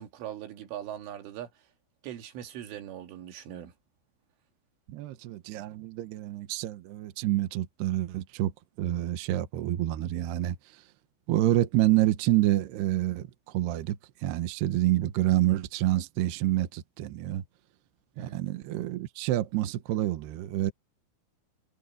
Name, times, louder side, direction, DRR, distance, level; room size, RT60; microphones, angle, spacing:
voice 1, 0.0-1.5 2.0-3.7 18.1-18.4, right 11 dB, 85° right, 4.8 m, -40 dB
voice 2, 4.9-8.5 8.8-10.8 11.3-17.4 18.2-20.7, right 14 dB, 70° right, 2.9 m, -28 dB
omnidirectional pair, 5.4 m